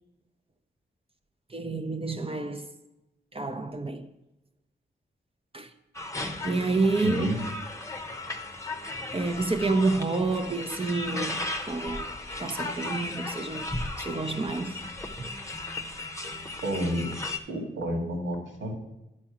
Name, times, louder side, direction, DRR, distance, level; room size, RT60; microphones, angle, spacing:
voice 1, 1.5-2.8 3.3-4.1 5.5-5.7 6.4-7.3 9.1-12.1 12.4-14.8 15.2-15.3, right 3 dB, 30° right, 0.7 m, -29 dB
sound 1, 5.9-17.4, left 2 dB, 15° left, 0.9 m, -36 dB
voice 2, 7.0-7.5 16.6-17.2 17.5-18.7, equal, 80° right, 2.1 m, -30 dB
10.5 x 4.4 x 6.0 m
cardioid pair, 65°, 20 cm